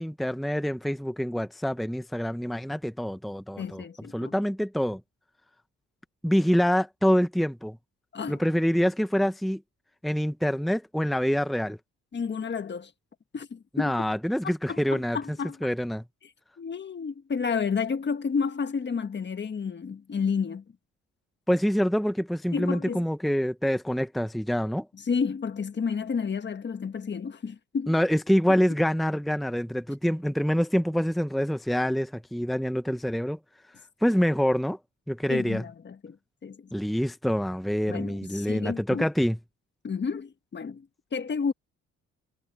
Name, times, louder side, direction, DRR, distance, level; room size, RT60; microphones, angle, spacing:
voice 1, 0.0-3.8 4.1-5.0 6.2-7.8 8.3-9.6 10.0-11.8 13.7-16.0 21.5-24.9 27.9-33.4 34.0-34.8 35.1-35.6 36.7-39.4, equal, ahead, 0.9 m, -26 dB
voice 2, 3.6-4.4 8.1-8.4 12.1-12.9 13.3-13.9 14.7-15.6 16.6-20.6 22.5-23.0 24.9-28.0 35.3-36.2 36.4-36.7 37.9-39.1 39.8-40.9 41.1-41.5, left 5 dB, 35° left, 1.5 m, -31 dB
cardioid pair, 90°, 30 cm